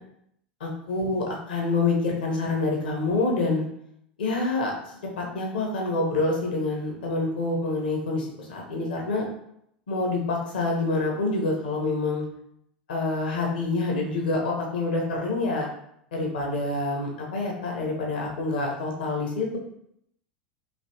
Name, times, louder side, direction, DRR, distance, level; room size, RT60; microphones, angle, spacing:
voice 1, 0.6-3.7 4.2-9.2 9.9-12.2 12.9-15.7 16.1-19.6, left 3 dB, 65° left, -1 dB, 0.9 m, -27 dB
3.2 x 2.7 x 2.8 m, 0.73 s
figure-of-eight pair, 80°, 5 cm